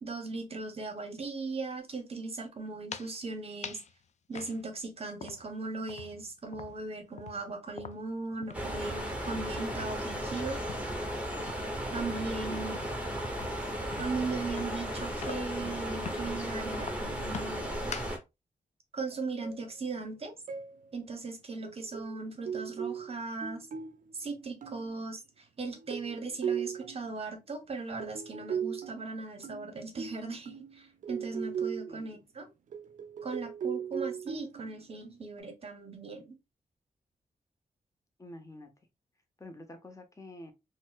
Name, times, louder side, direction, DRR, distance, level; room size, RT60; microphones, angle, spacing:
voice 1, 0.0-3.8 4.3-10.7 11.9-12.8 14.0-17.9 18.9-20.4 20.9-23.7 24.1-32.5 33.2-36.3, right 3 dB, 45° right, 0.8 m, -38 dB
sound 1, 2.7-3.2 3.6-3.9 4.3-5.6 5.9-8.7 9.0-9.2 9.6-11.0 11.4-15.6 16.0-16.3 16.7-18.2, left 7 dB, 55° left, 0.4 m, -45 dB
sound 2, 8.5-18.2, equal, 10° right, 1.0 m, -35 dB
sound 3, 19.1-19.6 19.9-20.1 20.5-20.8 21.6-25.0 25.8-27.2 28.0-32.0 32.7-35.4, right 7 dB, 65° right, 0.4 m, -38 dB
voice 2, 31.9-32.2 38.2-38.7 39.4-40.5, left 1 dB, 20° left, 0.8 m, -47 dB
4.1 x 2.1 x 2.4 m
cardioid pair, 90°, 14 cm